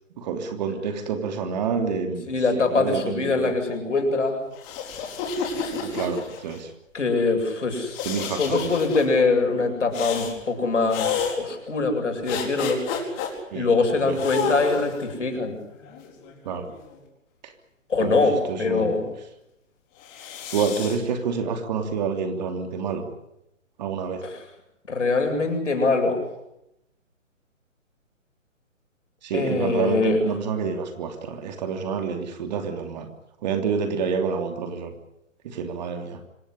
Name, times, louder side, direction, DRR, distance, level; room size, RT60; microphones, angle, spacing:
voice 1, 0.2-2.3 2.5-3.5 5.8-6.7 8.0-8.7 13.5-13.7 13.9-14.5 16.4-16.7 17.4-17.5 18.0-18.9 20.5-23.1 23.8-24.2 29.2-33.1 33.4-34.9 35.4-36.2, right 6 dB, 35° right, 6 dB, 3.1 m, -28 dB
voice 2, 2.3-4.4 6.9-8.0 8.4-12.8 13.5-15.5 17.9-19.0 24.2-24.4 24.9-26.3 29.3-30.2, left 3 dB, 65° left, 4 dB, 8.0 m, -23 dB
sound 1, 4.5-6.6 7.9-9.0 9.9-10.3 10.9-11.4 12.3-13.3 14.1-15.0 15.8-17.0 20.0-21.0, left 6 dB, 20° left, 4.6 m, -30 dB
26.0 x 17.0 x 10.0 m, 0.83 s
figure-of-eight pair, 140°, 39 cm